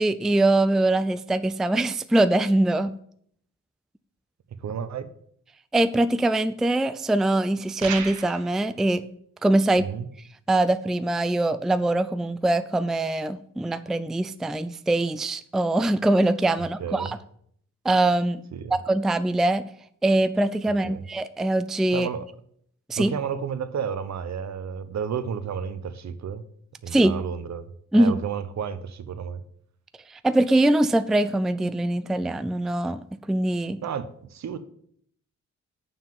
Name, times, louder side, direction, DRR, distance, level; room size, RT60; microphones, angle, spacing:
voice 1, 0.0-2.9 5.7-9.0 9.4-9.9 10.5-17.2 17.8-18.4 18.7-19.6 20.0-22.1 22.9-23.1 26.9-27.1 27.9-28.1 30.1-33.8, right 1 dB, ahead, 12 dB, 0.3 m, -23 dB
voice 2, 4.6-5.1 9.8-10.1 16.8-17.1 18.5-18.7 20.8-21.0 21.9-22.3 23.0-26.4 26.8-27.7 27.9-29.4 33.8-34.6, right 7 dB, 65° right, 12 dB, 0.9 m, -31 dB
sound 1, 7.8-8.5, right 7 dB, 90° right, 1.2 m, -33 dB
7.0 x 5.7 x 7.5 m, 0.65 s
cardioid pair, 100°, 30 cm